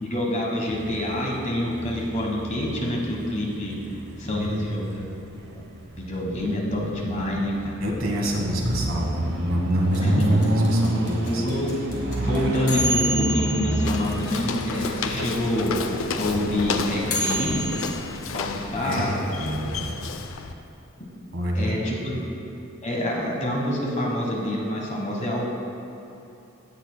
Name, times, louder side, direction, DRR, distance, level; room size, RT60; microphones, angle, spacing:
voice 1, 0.0-3.7 4.2-5.0 5.4-5.6 6.0-7.8 10.0-10.3 11.2-11.7 12.2-15.7 16.2-17.8 18.3-19.2 21.5-22.1 22.8-25.5, left 1 dB, 35° left, -2 dB, 1.3 m, -27 dB
sound 1, 0.7-17.9, right 1 dB, 55° right, 0.8 m, -29 dB
voice 2, 4.3-4.9 7.8-11.4 18.8-20.1 21.3-21.8 22.0-22.2, equal, 70° right, -1 dB, 1.4 m, -29 dB
sound 2, 9.9-15.1 15.3-15.4 15.6-17.9, equal, 50° left, 1.7 m, -29 dB
Walk footsteps, 13.8-20.5, left 4 dB, 70° left, 0.5 m, -32 dB
16.0 x 6.7 x 2.2 m, 2.9 s
head